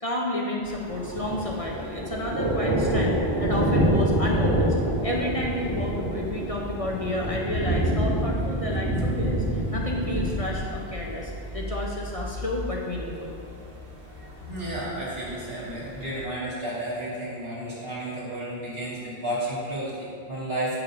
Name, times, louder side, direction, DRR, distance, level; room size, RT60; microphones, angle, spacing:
voice 1, 0.0-4.7 5.0-13.3, left 1 dB, 35° left, -2 dB, 0.9 m, -31 dB
Thunder, 0.7-16.2, right 1 dB, 90° right, 1.8 m, -28 dB
voice 2, 14.4-20.8, right 1 dB, 65° right, -8 dB, 2.8 m, -32 dB
8.6 x 6.0 x 5.0 m, 2.3 s
omnidirectional pair, 1.1 m